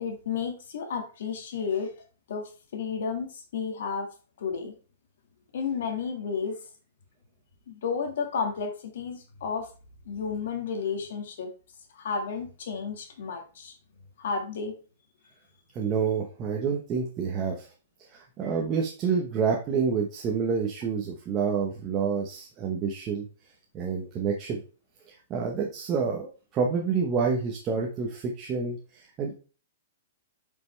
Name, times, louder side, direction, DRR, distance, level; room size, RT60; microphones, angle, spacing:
voice 1, 0.0-1.9 2.3-2.4 2.7-4.1 4.4-4.7 5.5-6.5 7.7-9.7 10.1-11.5 11.9-13.7 14.2-14.7, left 6 dB, 65° left, 4 dB, 1.7 m, -32 dB
voice 2, 15.7-17.7 18.1-23.3 23.7-24.6 25.0-29.3, right 5 dB, 20° right, 0 dB, 1.0 m, -28 dB
7.8 x 5.5 x 3.2 m, 0.35 s
hypercardioid pair, 170°, 0 cm